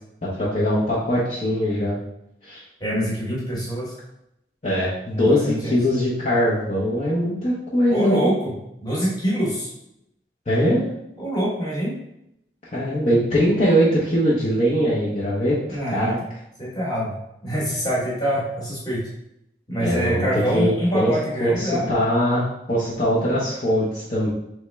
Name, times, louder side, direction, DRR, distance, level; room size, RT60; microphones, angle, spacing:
voice 1, 0.2-2.0 2.4-2.6 4.6-8.3 10.5-10.9 12.7-16.2 19.8-24.3, equal, 40° left, -8 dB, 0.8 m, -21 dB
voice 2, 2.8-3.9 5.2-5.8 7.9-8.5 8.8-9.7 11.2-11.9 15.7-16.1 16.6-17.1 17.4-19.0 19.7-21.9, equal, 20° left, -5 dB, 1.2 m, -25 dB
3.5 x 3.2 x 3.3 m, 0.82 s
head